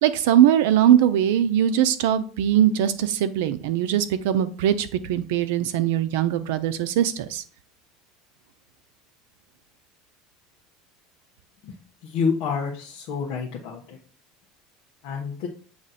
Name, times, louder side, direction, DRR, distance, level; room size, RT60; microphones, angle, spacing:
voice 1, 0.0-7.4, right 10 dB, 85° right, 11 dB, 0.6 m, -21 dB
voice 2, 12.0-13.8 15.0-15.5, left 5 dB, 55° left, -4 dB, 1.0 m, -28 dB
7.7 x 3.2 x 4.2 m, 0.41 s
cardioid pair, 170°, 0 cm